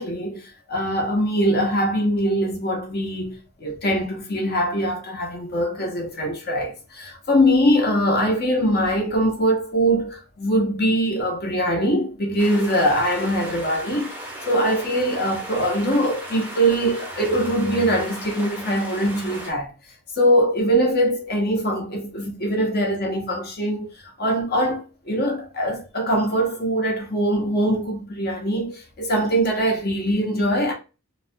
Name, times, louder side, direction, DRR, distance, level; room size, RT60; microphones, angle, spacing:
voice 1, 0.0-14.1 14.5-19.7 20.1-30.7, equal, 45° left, 0.6 m, -22 dB
sound 1, 12.4-19.5, equal, 10° right, 0.6 m, -36 dB
2.3 x 2.1 x 2.6 m
head